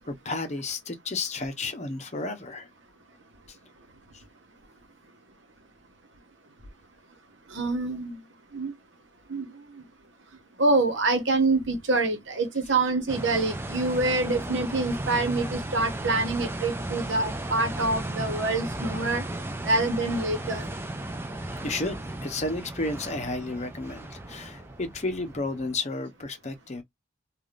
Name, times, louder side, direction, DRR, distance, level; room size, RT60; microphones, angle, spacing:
voice 1, 0.1-2.7 21.6-26.8, left 2 dB, 35° left, 0.7 m, -32 dB
voice 2, 7.5-8.2 8.5-8.7 9.3-9.5 10.6-19.2 19.6-20.6, right 2 dB, 75° right, 1.0 m, -26 dB
sound 1, 13.1-25.8, right 1 dB, 10° right, 0.4 m, -35 dB
3.4 x 2.4 x 2.4 m
head